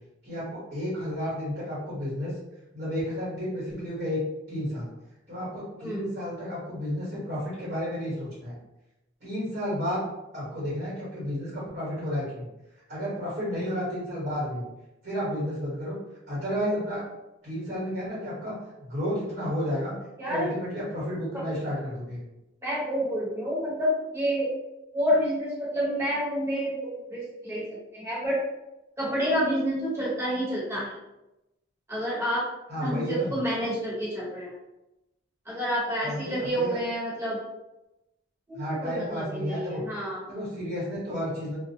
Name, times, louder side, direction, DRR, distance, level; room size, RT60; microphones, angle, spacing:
voice 1, 0.2-2.3 2.7-4.2 4.5-4.9 5.3-8.6 9.2-10.0 10.3-12.5 12.9-14.6 15.0-16.0 16.3-17.0 17.4-18.5 18.8-19.9 20.3-22.2 32.7-33.4 36.0-36.8 38.5-39.8 40.3-41.6, equal, 50° right, -10 dB, 1.2 m, -32 dB
voice 2, 22.6-24.5 24.9-27.6 27.9-28.4 29.0-30.9 31.9-32.5 32.8-34.5 35.5-37.4 38.5-40.2, equal, 15° right, -8 dB, 1.0 m, -28 dB
2.4 x 2.1 x 2.7 m, 0.94 s
head